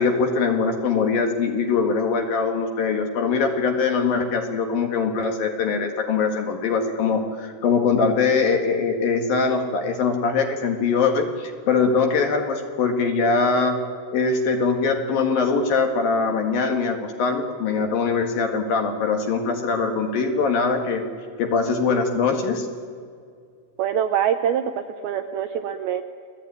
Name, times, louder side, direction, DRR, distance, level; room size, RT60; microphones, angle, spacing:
voice 1, 0.0-13.8 14.1-21.0 21.4-22.7, left 4 dB, 60° left, 4 dB, 3.1 m, -22 dB
voice 2, 23.8-24.7 25.0-26.0, right 9 dB, 75° right, 7 dB, 2.3 m, -24 dB
29.0 x 20.0 x 9.5 m, 2.2 s
omnidirectional pair, 5.3 m